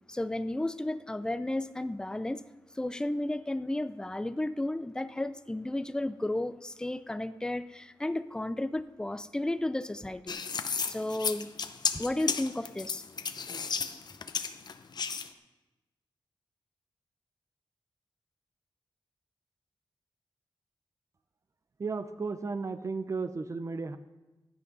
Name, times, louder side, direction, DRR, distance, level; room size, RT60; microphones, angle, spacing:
voice 1, 0.1-2.4 2.8-10.3 10.9-11.5 11.9-13.0, left 1 dB, 10° left, 13 dB, 0.4 m, -33 dB
sound 1, 10.3-15.3, left 5 dB, 50° left, 0.7 m, -33 dB
voice 2, 21.8-24.0, right 4 dB, 35° right, 11 dB, 0.6 m, -34 dB
15.5 x 11.0 x 4.0 m, 1.1 s
wide cardioid pair, 145°, 9 cm